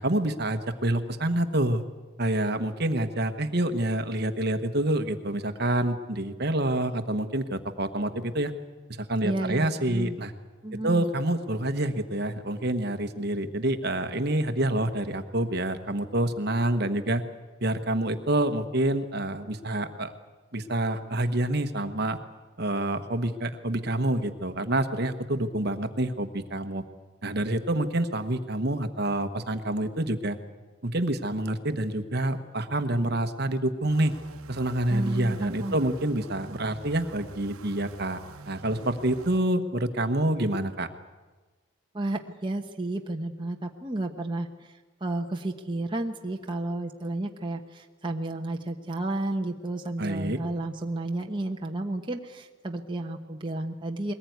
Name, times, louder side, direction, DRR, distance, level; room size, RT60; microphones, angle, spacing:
voice 1, 0.0-1.8 2.2-8.5 8.9-10.3 10.8-17.2 17.6-20.1 20.5-22.2 22.6-26.8 27.2-30.4 30.8-34.1 34.5-38.2 38.5-40.9 50.0-50.4, right 1 dB, 50° right, 9 dB, 1.2 m, -27 dB
voice 2, 9.2-10.2 10.6-11.1 34.9-35.8 41.9-54.1, right 2 dB, 20° right, 2 dB, 1.1 m, -32 dB
sound 1, 33.9-39.4, right 4 dB, 90° right, 0.9 m, -47 dB
22.0 x 19.5 x 9.4 m, 1.3 s
head